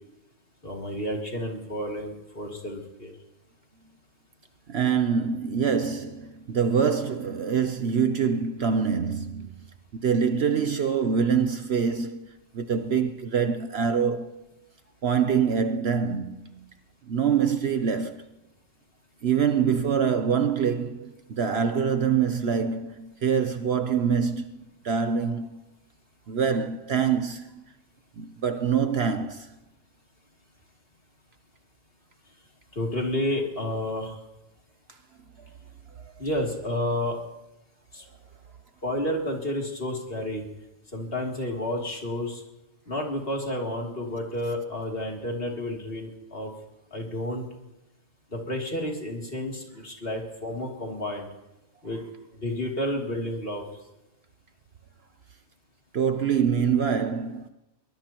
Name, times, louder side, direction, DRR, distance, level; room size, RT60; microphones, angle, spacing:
voice 1, 0.6-3.1 32.7-34.2 36.2-37.2 37.9-38.0 38.8-40.5 40.9-42.4 42.9-46.5 46.9-47.5 48.3-51.3 51.8-52.0 52.3-53.6, left 1 dB, 45° left, 3.2 m, -30 dB
voice 2, 4.7-9.5 9.9-14.5 15.0-16.7 17.1-18.3 19.2-24.5 24.8-25.6 26.3-27.6 28.2-29.5 55.9-57.5, right 6 dB, 55° right, 1.0 m, -25 dB
23.0 x 19.5 x 3.0 m
omnidirectional pair, 1.4 m